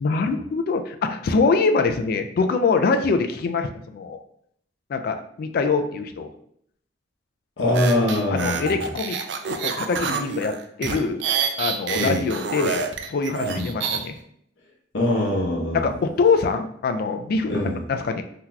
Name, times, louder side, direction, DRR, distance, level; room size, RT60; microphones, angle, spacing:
voice 1, 0.0-4.2 4.9-6.3 8.3-9.2 9.5-10.5 10.8-11.2 11.6-12.8 13.1-14.2 15.7-18.2, left 4 dB, 55° left, 8 dB, 0.3 m, -24 dB
voice 2, 7.6-8.7 11.9-12.2 13.4-13.7 14.9-15.9 17.5-17.8, left 1 dB, 85° left, -3 dB, 0.8 m, -23 dB
sound 1, 7.7-14.0, right 6 dB, 65° right, 0.4 m, -27 dB
3.7 x 2.8 x 2.2 m, 0.69 s
head